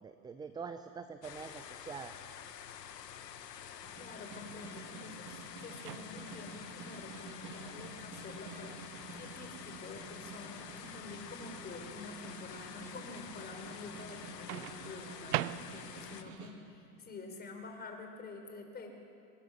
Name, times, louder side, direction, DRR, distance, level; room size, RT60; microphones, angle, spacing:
voice 1, 0.0-2.1, right 5 dB, 10° right, 9 dB, 0.6 m, -45 dB
sound 1, 1.2-16.2, left 9 dB, 85° left, 1.7 m, -48 dB
Snare drum, 3.8-16.6, right 4 dB, 35° right, 3.0 m, -50 dB
voice 2, 4.0-8.8 9.1-18.9, left 3 dB, 20° left, 3 dB, 4.5 m, -48 dB
Microwave oven, 5.8-6.5 8.5-8.7 14.5-16.1, right 15 dB, 70° right, 0.8 m, -39 dB
25.5 x 20.0 x 6.6 m, 2.4 s
hypercardioid pair, 115°, 47 cm